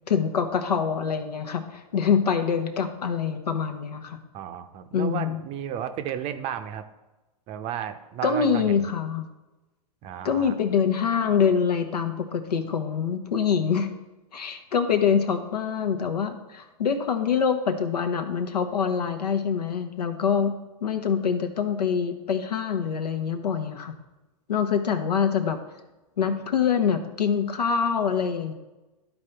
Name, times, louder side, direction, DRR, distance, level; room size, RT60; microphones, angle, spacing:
voice 1, 0.1-4.2 4.9-5.4 8.2-9.3 10.2-13.9 14.3-20.5 20.8-23.9 24.5-25.6 26.2-28.5, left 6 dB, 85° left, 7 dB, 1.0 m, -25 dB
voice 2, 4.3-6.9 7.5-8.6 10.0-10.5, right 9 dB, 30° right, 9 dB, 0.6 m, -33 dB
12.5 x 4.3 x 3.4 m, 1.1 s
hypercardioid pair, 120°, 20 cm